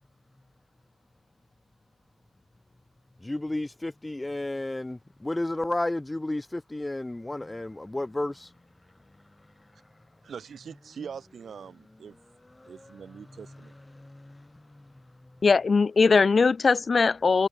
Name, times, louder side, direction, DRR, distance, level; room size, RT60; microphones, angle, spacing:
voice 1, 3.2-8.5 12.5-13.0 13.9-14.5, left 1 dB, 10° left, 1.6 m, -32 dB
voice 2, 10.2-12.2 12.6-13.7, right 7 dB, 50° right, 6.5 m, -43 dB
voice 3, 15.4-17.5, left 4 dB, 35° left, 0.5 m, -20 dB
cardioid pair, 90°, 0 cm